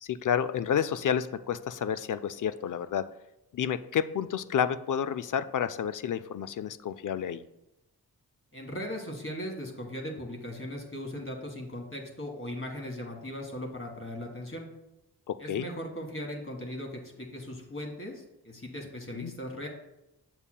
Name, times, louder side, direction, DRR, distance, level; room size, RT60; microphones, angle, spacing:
voice 1, 0.0-3.0 3.5-7.4 15.3-15.7 19.1-19.3, left 8 dB, 60° left, 13 dB, 0.4 m, -30 dB
voice 2, 8.5-14.7 15.4-19.7, left 1 dB, 35° left, 2 dB, 1.6 m, -38 dB
7.2 x 6.9 x 2.2 m, 0.92 s
cardioid pair, 70°, 37 cm